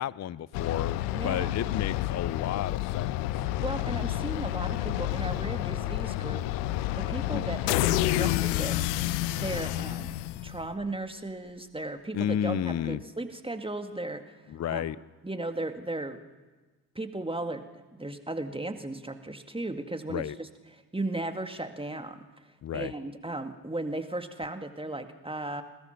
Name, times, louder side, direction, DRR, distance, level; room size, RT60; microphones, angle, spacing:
voice 1, 0.0-3.4 7.3-7.4 12.1-13.0 14.5-15.0 20.1-20.4 22.6-22.9, left 10 dB, 35° left, 20 dB, 0.6 m, -32 dB
sound 1, 0.5-10.8, left 15 dB, 75° left, 0.9 m, -29 dB
voice 2, 1.1-1.8 3.6-6.5 7.0-8.9 9.3-10.1 10.4-14.4 14.7-14.8 15.2-16.2 17.0-22.2 22.7-25.6, right 2 dB, 10° right, 7 dB, 2.0 m, -36 dB
28.0 x 19.0 x 5.9 m, 1.2 s
hypercardioid pair, 45°, 49 cm